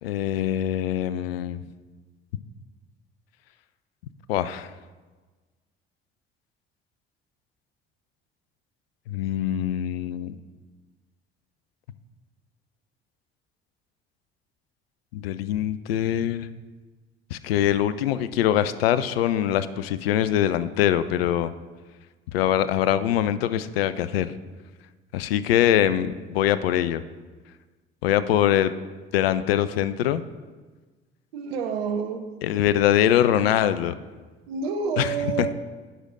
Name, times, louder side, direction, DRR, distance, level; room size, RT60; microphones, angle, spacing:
voice 1, 0.0-1.6 4.3-4.7 9.1-10.4 15.1-16.5 17.3-21.5 22.3-24.3 25.1-27.0 28.0-28.7 29.1-30.2 32.4-33.9 35.0-35.5, left 11 dB, 80° left, 14 dB, 0.5 m, -23 dB
voice 2, 31.3-32.2 34.5-35.5, right 5 dB, 80° right, 7 dB, 0.8 m, -28 dB
17.5 x 6.5 x 2.5 m, 1.3 s
hypercardioid pair, 50°, 29 cm